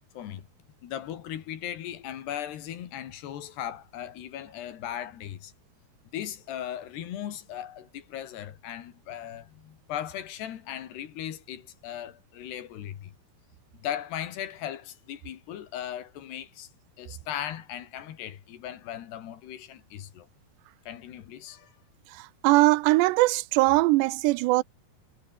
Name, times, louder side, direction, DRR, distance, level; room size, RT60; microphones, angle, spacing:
voice 1, 0.2-0.5 0.8-5.5 6.1-13.1 13.8-16.7 17.0-20.3 20.9-21.7, left 11 dB, 75° left, 4.1 m, -38 dB
voice 2, 22.4-24.6, right 21 dB, 85° right, 2.8 m, -21 dB
omnidirectional pair, 4.9 m